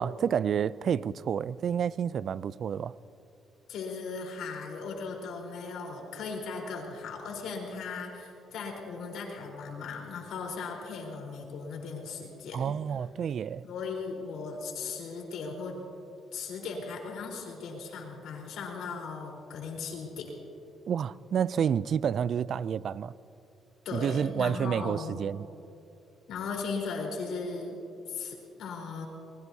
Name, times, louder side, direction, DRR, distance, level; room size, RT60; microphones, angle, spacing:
voice 1, 0.0-2.9 12.5-13.6 20.9-23.1 23.9-25.5, right 8 dB, 60° right, 0.3 m, -29 dB
voice 2, 3.7-12.7 13.6-15.8 16.3-20.3 23.8-25.2 26.3-27.8 28.1-29.1, left 4 dB, 80° left, 3.9 m, -37 dB
24.5 x 20.5 x 2.7 m
cardioid pair, 90°, 0 cm